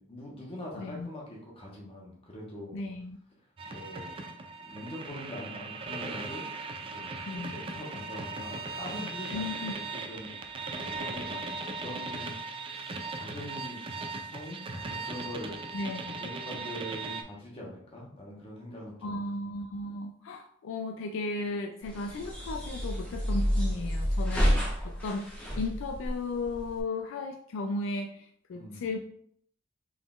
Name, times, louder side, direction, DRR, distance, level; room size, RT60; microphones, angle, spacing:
voice 1, 0.0-2.8 3.7-4.2 4.6-6.5 6.8-9.7 10.0-12.4 12.7-13.8 14.2-15.8 16.2-19.2 28.5-28.9, left 1 dB, 25° left, -3 dB, 1.1 m, -43 dB
voice 2, 0.8-1.1 2.7-3.2 7.3-7.5 9.3-9.7 15.7-16.2 19.0-29.0, left 2 dB, 65° left, 4 dB, 0.3 m, -35 dB
sound 1, 3.6-17.2, right 3 dB, 25° right, 0.4 m, -38 dB
sound 2, 21.8-26.8, equal, 5° left, 0.9 m, -29 dB
3.9 x 3.6 x 2.4 m, 0.64 s
head